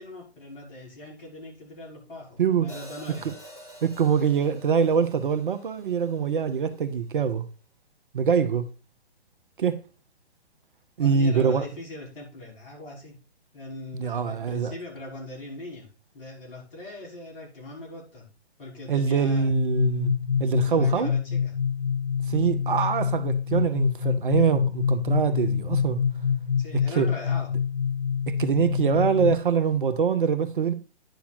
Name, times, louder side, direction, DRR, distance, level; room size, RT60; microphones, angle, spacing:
voice 1, 0.0-3.3 11.0-13.1 13.5-15.9 16.1-18.3 18.6-19.5 20.6-21.5 22.6-22.9 26.6-27.5, left 2 dB, 55° left, 5.6 m, -40 dB
Hi-hat, 2.7-6.9, right 1 dB, 20° left, 3.4 m, -48 dB
voice 2, 3.8-7.5 8.1-8.7 9.6-9.8 11.0-11.7 13.9-14.7 18.9-20.1 20.4-21.1 22.3-26.0 27.0-27.1 28.3-30.7, right 6 dB, 50° right, 0.9 m, -24 dB
sound 1, 19.5-29.3, left 7 dB, 85° left, 1.8 m, -26 dB
10.5 x 5.6 x 4.3 m
figure-of-eight pair, 130°, 33 cm